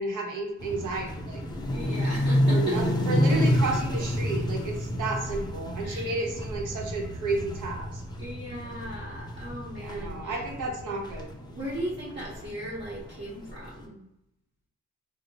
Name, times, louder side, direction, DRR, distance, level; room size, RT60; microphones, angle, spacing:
voice 1, 0.0-1.4 2.5-8.0 9.8-11.3, right 2 dB, 75° right, 1 dB, 0.9 m, -32 dB
sound 1, 0.6-13.7, equal, 15° left, 0.4 m, -29 dB
voice 2, 1.7-3.2 5.8-6.2 8.2-10.4 11.5-14.0, equal, 35° right, -8 dB, 0.9 m, -37 dB
2.8 x 2.1 x 4.0 m, 0.84 s
wide cardioid pair, 140°, 31 cm